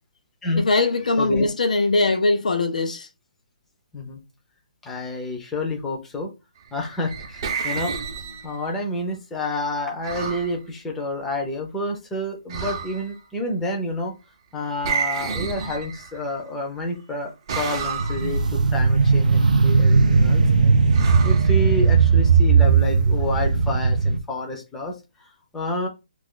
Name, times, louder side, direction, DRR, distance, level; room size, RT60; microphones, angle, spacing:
voice 1, 0.6-3.1, left 3 dB, 80° left, 0.6 m, -21 dB
voice 2, 1.2-1.5 3.9-4.2 4.8-6.3 6.7-7.9 8.4-14.1 14.5-20.7 21.2-25.9, left 1 dB, 5° left, 0.6 m, -29 dB
sound 1, 6.8-8.8 10.0-10.5 12.5-13.2 14.8-16.3 17.5-18.5 20.9-22.1, right 6 dB, 30° right, 0.7 m, -30 dB
sound 2, 18.0-24.2, right 5 dB, 80° right, 0.5 m, -17 dB
2.5 x 2.5 x 3.7 m
hypercardioid pair, 165°, 4 cm